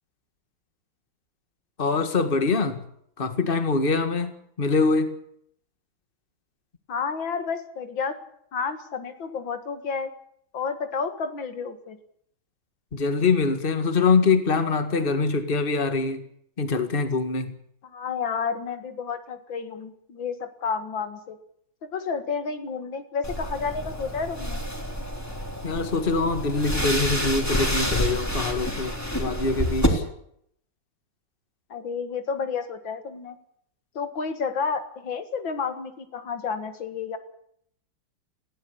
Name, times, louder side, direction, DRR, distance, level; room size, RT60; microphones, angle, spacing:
voice 1, 1.8-2.8 3.2-5.2 12.9-16.2 16.6-17.5 25.6-30.0, left 4 dB, 30° left, 8 dB, 1.9 m, -24 dB
voice 2, 6.9-8.2 8.5-10.1 10.5-12.0 17.9-21.4 21.8-24.6 31.7-33.4 34.0-37.2, left 5 dB, 75° left, 9 dB, 2.5 m, -30 dB
sound 1, 23.2-29.9, equal, 10° left, 3.4 m, -28 dB
19.5 x 16.5 x 8.5 m, 0.68 s
omnidirectional pair, 2.1 m